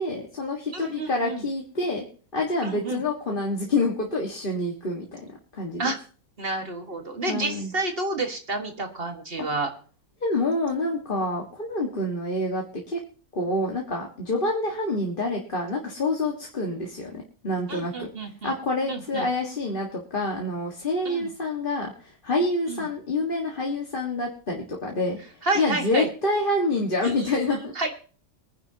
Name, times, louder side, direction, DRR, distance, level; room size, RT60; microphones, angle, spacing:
voice 1, 0.0-2.1 2.3-5.9 7.3-7.7 9.4-9.5 10.2-13.0 13.3-18.1 18.4-25.2 25.5-27.9, left 2 dB, 35° left, 0 dB, 1.9 m, -27 dB
voice 2, 0.7-1.4 2.6-3.0 5.8-6.0 6.4-9.7 17.7-18.5 18.9-19.3 21.1-21.3 22.7-22.9 25.4-26.1 27.8-27.9, right 2 dB, 40° right, 5 dB, 2.0 m, -29 dB
23.0 x 10.0 x 2.9 m, 0.41 s
omnidirectional pair, 1.5 m